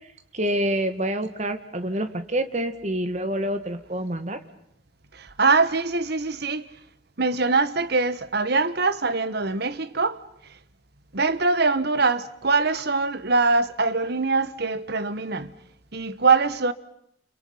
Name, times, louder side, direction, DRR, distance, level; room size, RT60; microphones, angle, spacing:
voice 1, 0.3-4.4, right 1 dB, 35° right, 2.0 m, -27 dB
voice 2, 5.1-6.7 7.2-10.2 10.5-10.6 11.1-15.5 15.9-16.7, right 4 dB, 55° right, 1.2 m, -23 dB
30.0 x 29.5 x 5.6 m
head